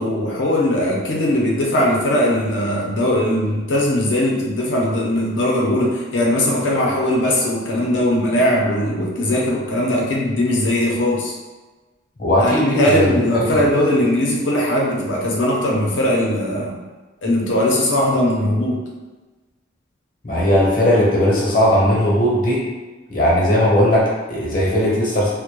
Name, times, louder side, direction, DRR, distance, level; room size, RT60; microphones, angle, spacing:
voice 1, 0.0-11.3 12.4-16.8 17.2-18.8, left 1 dB, 85° left, -2 dB, 0.6 m, -19 dB
voice 2, 12.2-13.1 13.3-13.5 20.2-22.6 23.1-25.3, equal, 50° left, -5 dB, 0.7 m, -17 dB
2.1 x 2.1 x 2.9 m, 1.2 s
head